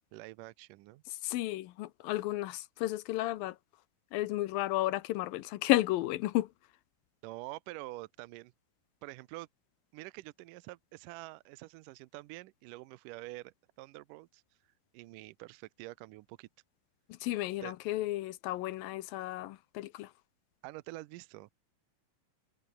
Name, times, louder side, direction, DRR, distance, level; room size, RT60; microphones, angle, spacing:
voice 1, 0.1-1.0 7.2-8.5 9.0-9.5 9.9-14.4 14.9-16.5 17.6-17.7 20.6-21.5, right 19 dB, 80° right, 2.1 m, -46 dB
voice 2, 1.1-3.6 4.1-6.5 17.1-20.1, left 16 dB, 80° left, 2.6 m, -33 dB
omnidirectional pair, 4.1 m